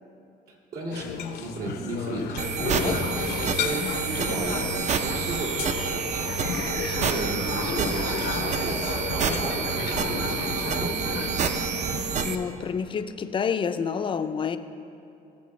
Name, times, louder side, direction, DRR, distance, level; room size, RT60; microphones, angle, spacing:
voice 1, 0.5-4.6 4.9-6.2 6.9-8.8 9.1-11.3, right 2 dB, 70° right, -2 dB, 2.1 m, -34 dB
sound 1, 0.9-11.3, left 7 dB, 70° left, 0.7 m, -33 dB
sound 2, 2.4-12.4, right 6 dB, 45° right, 0.6 m, -28 dB
voice 2, 2.6-2.9 6.5-7.1 12.2-14.6, left 6 dB, 30° left, 10 dB, 0.4 m, -29 dB
sound 3, 6.4-12.1, left 4 dB, 90° left, 1.3 m, -38 dB
17.0 x 6.9 x 3.2 m, 2.6 s
cardioid pair, 110°, 17 cm